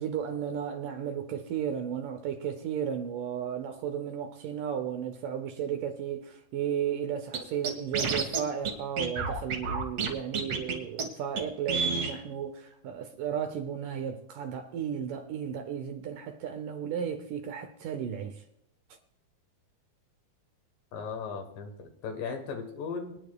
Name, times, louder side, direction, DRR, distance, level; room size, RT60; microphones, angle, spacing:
voice 1, 0.0-18.4, right 8 dB, 75° right, 2.1 m, -34 dB
Scratching (performance technique), 7.3-7.4 7.6-8.4 8.6-8.7 9.0-10.1 10.3-10.7 11.0-11.1 11.4-11.5 11.7-12.1, right 5 dB, 50° right, 2.2 m, -29 dB
voice 2, 20.9-23.2, left 5 dB, 70° left, 2.8 m, -37 dB
24.0 x 10.5 x 2.3 m
omnidirectional pair, 4.3 m